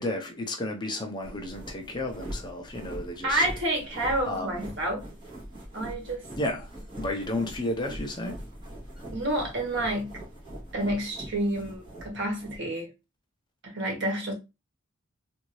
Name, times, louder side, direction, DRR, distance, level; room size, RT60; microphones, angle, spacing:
voice 1, 0.0-3.4 4.3-4.6 6.4-6.7 7.0-8.4, left 1 dB, 20° left, 0.6 m, -32 dB
sound 1, 1.2-12.6, right 1 dB, 25° right, 1.6 m, -42 dB
voice 2, 3.2-5.0 5.7-6.3 9.1-10.2 10.7-12.9 13.6-14.3, right 1 dB, 60° right, 1.5 m, -29 dB
3.6 x 2.6 x 3.1 m
head